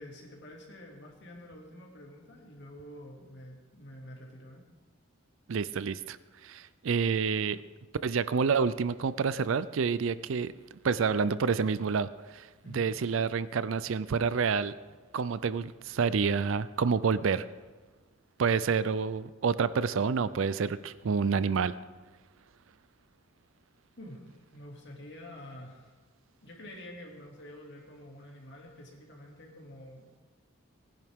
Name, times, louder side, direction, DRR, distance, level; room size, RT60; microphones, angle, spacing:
voice 1, 0.0-4.6 12.6-12.9 24.0-26.0 26.4-30.2, left 1 dB, 55° left, -1 dB, 2.5 m, -48 dB
voice 2, 5.5-6.2 6.4-7.6 8.0-10.5 10.8-12.5 12.7-14.7 15.1-17.4 18.4-21.7, right 5 dB, 70° right, 16 dB, 0.4 m, -28 dB
19.0 x 10.5 x 3.6 m, 1.3 s
head